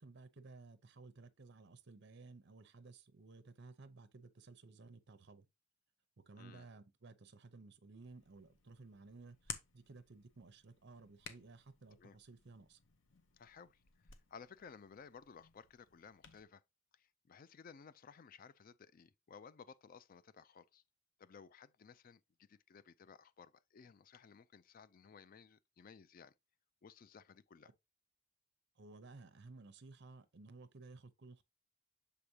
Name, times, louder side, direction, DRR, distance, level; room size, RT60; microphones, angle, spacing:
voice 1, 0.0-5.5 6.2-12.8 28.7-31.4, right 3 dB, 55° right, 0.7 m, -56 dB
voice 2, 6.4-6.7 11.9-12.2 13.4-16.6 16.9-20.8 21.2-26.3 26.8-27.7, left 6 dB, 45° left, 0.4 m, -58 dB
Hands, 8.0-16.4, left 7 dB, 65° left, 0.8 m, -55 dB
7.0 x 5.0 x 2.8 m
head